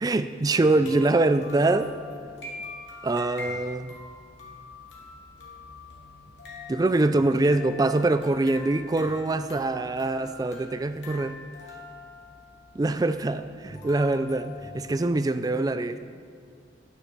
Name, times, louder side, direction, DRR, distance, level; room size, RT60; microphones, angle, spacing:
voice 1, 0.0-1.9 3.0-3.9 6.7-11.4 12.7-16.0, right 2 dB, 20° right, 11 dB, 0.3 m, -24 dB
sound 1, 0.8-15.1, left 3 dB, 80° left, 2.7 m, -44 dB
11.5 x 9.7 x 5.8 m, 2.1 s
head